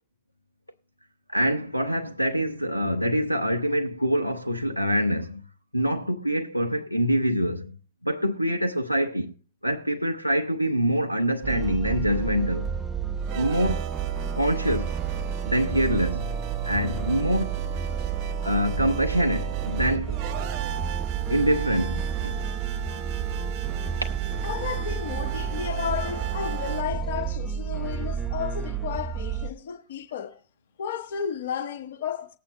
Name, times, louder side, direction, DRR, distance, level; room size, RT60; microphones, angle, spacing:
voice 1, 1.3-5.4 5.7-7.8 8.0-9.3 9.6-12.7 13.3-13.9 14.3-14.9 15.5-16.3 16.6-17.7 18.4-20.2 21.3-22.3, equal, 90° left, 0.6 m, -25 dB
sound 1, 11.4-29.5, right 7 dB, 15° right, 0.6 m, -30 dB
sound 2, 13.1-26.8, right 11 dB, 45° right, 1.0 m, -38 dB
voice 2, 24.4-30.4 30.8-32.4, left 8 dB, 60° left, 1.3 m, -33 dB
19.0 x 8.5 x 2.9 m
figure-of-eight pair, 90°, 0 cm